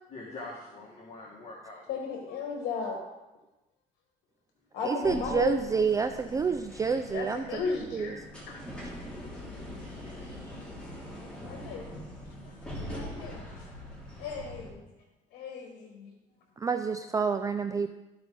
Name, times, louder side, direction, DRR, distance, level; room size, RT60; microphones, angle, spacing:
voice 1, 0.1-1.9 9.7-10.4 14.2-14.3 16.3-16.6, left 2 dB, 40° left, -4 dB, 1.7 m, -46 dB
voice 2, 1.9-3.0 4.7-5.6 7.1-8.2 8.5-8.6 10.1-10.2 11.5-11.8 12.4-13.5 14.2-14.8 15.3-16.1, left 5 dB, 90° left, 1 dB, 1.2 m, -35 dB
voice 3, 4.9-7.4 7.9-8.1 16.6-17.9, right 5 dB, 20° right, 8 dB, 0.3 m, -28 dB
sound 1, 5.0-14.7, equal, 5° left, 2.6 m, -43 dB
13.5 x 4.8 x 3.8 m, 1.0 s
cardioid pair, 110°, 17 cm